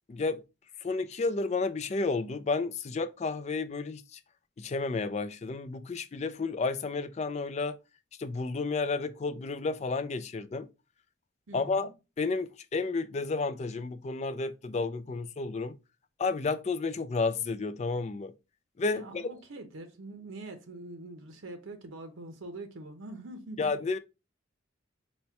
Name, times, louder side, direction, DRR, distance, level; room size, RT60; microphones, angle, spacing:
voice 1, 0.1-0.4 0.8-4.2 4.6-7.8 8.2-10.7 11.5-11.9 12.2-15.8 16.2-18.3 18.8-19.3 23.6-24.0, left 3 dB, 35° left, 0.3 m, -31 dB
voice 2, 11.5-11.9 18.9-23.6, right 2 dB, 80° right, 0.7 m, -44 dB
4.1 x 2.2 x 4.4 m
head